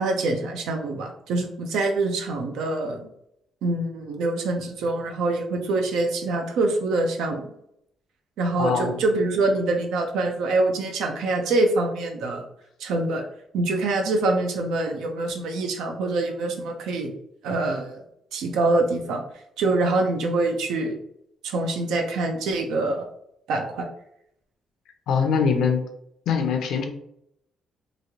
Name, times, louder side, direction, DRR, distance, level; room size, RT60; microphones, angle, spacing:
voice 1, 0.0-3.1 3.6-7.5 8.4-12.4 12.8-13.2 13.5-17.1 17.4-18.0 18.3-19.2 19.6-21.0 21.4-23.1 23.5-23.8, right 2 dB, 85° right, 3 dB, 0.6 m, -25 dB
voice 2, 8.6-9.0 25.1-25.8 26.3-26.8, left 6 dB, 75° left, 5 dB, 0.5 m, -22 dB
3.1 x 2.4 x 2.8 m, 0.74 s
cardioid pair, 90°, 0 cm